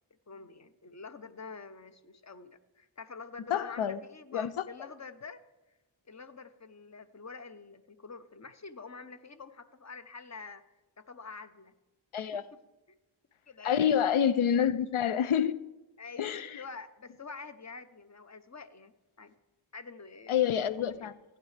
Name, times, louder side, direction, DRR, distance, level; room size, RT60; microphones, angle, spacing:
voice 1, 0.3-5.4 6.1-10.6 11.0-11.7 12.3-12.4 13.5-13.9 16.0-19.3 19.7-20.9, left 4 dB, 35° left, 0.7 m, -47 dB
voice 2, 3.5-4.0 4.3-4.6 12.1-12.5 13.6-15.6 16.2-16.6 20.3-21.1, left 8 dB, 80° left, 0.5 m, -27 dB
15.5 x 9.4 x 3.3 m
wide cardioid pair, 50°, 48 cm